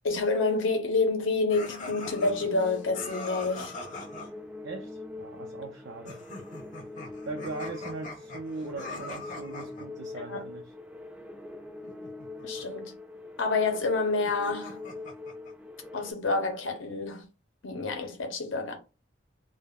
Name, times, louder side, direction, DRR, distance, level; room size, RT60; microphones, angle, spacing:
voice 1, 0.0-3.7 10.1-10.4 12.4-13.0 13.4-14.8 15.9-17.3 17.6-18.8, left 3 dB, 75° left, 0.7 m, -28 dB
sound 1, 1.5-4.3 6.1-9.9 11.8-12.7 14.2-15.5, left 2 dB, 40° left, 0.7 m, -42 dB
sound 2, 1.9-16.1, left 2 dB, 10° right, 0.4 m, -43 dB
voice 2, 4.6-6.2 7.3-10.7, right 3 dB, 65° right, 0.4 m, -40 dB
2.2 x 2.0 x 3.4 m
head